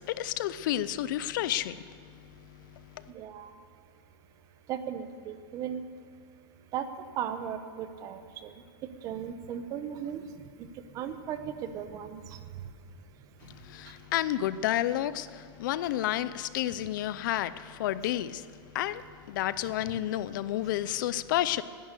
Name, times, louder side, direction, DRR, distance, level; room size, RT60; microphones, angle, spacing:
voice 1, 0.0-1.8 2.9-3.0 13.4-21.6, left 13 dB, 55° left, 0.5 m, -31 dB
voice 2, 3.1-3.5 4.7-5.8 6.7-6.9 7.2-8.5 9.0-10.2 10.6-10.7 10.9-12.4, right 9 dB, 25° right, 0.8 m, -36 dB
19.5 x 11.0 x 6.7 m
supercardioid pair, 170°, 13 cm